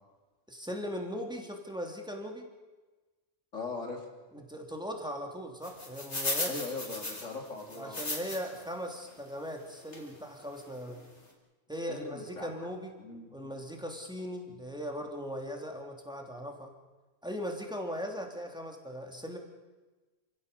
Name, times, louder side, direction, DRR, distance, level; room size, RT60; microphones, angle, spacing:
voice 1, 0.5-2.5 4.3-6.6 7.7-11.0 11.7-13.0 13.3-16.7 17.2-19.4, equal, 5° right, 2 dB, 3.1 m, -39 dB
voice 2, 3.5-4.1 6.5-8.0 11.9-12.5 13.0-13.5, left 3 dB, 90° left, 2 dB, 3.8 m, -40 dB
sound 1, 5.6-8.6 9.1-9.2 9.9-10.1 10.6-10.7 10.9-11.1, left 2 dB, 65° left, 4.0 m, -36 dB
28.5 x 16.5 x 6.9 m, 1.2 s
omnidirectional pair, 1.3 m